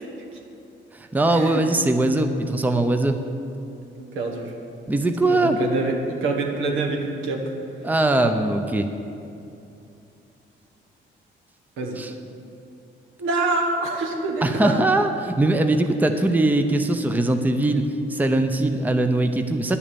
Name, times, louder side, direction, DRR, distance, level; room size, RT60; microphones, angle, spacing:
voice 1, 0.9-3.2 4.9-5.6 7.8-8.9 12.0-12.1 14.4-19.8, right 2 dB, 10° right, 7 dB, 0.6 m, -21 dB
voice 2, 4.1-4.5 5.3-7.4 11.8-12.0 13.2-14.9, right 3 dB, 80° right, 1 dB, 1.5 m, -25 dB
10.5 x 7.1 x 6.9 m, 2.7 s
cardioid pair, 90°, 20 cm